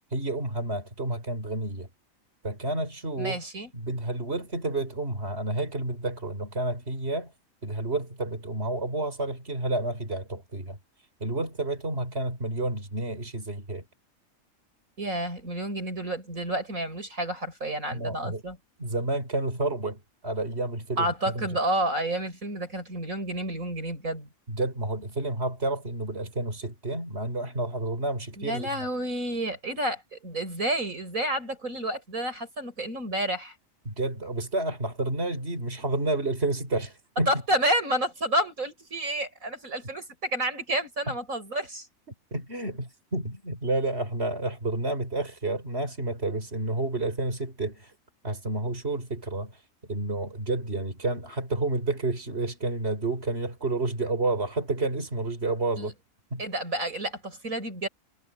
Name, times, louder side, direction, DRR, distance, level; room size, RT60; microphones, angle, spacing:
voice 1, 0.1-1.9 2.4-3.4 3.7-7.3 7.6-10.8 11.2-13.8 17.9-18.4 18.8-21.1 24.5-28.7 33.9-37.3 42.3-47.9 48.2-49.5 49.9-55.9 56.3-56.4, right 2 dB, 45° right, 5.2 m, -30 dB
voice 2, 3.2-3.7 15.0-18.6 21.0-24.3 28.4-33.6 37.3-41.9 55.8-55.9 56.4-57.9, right 1 dB, 75° right, 7.1 m, -30 dB
omnidirectional pair, 1.4 m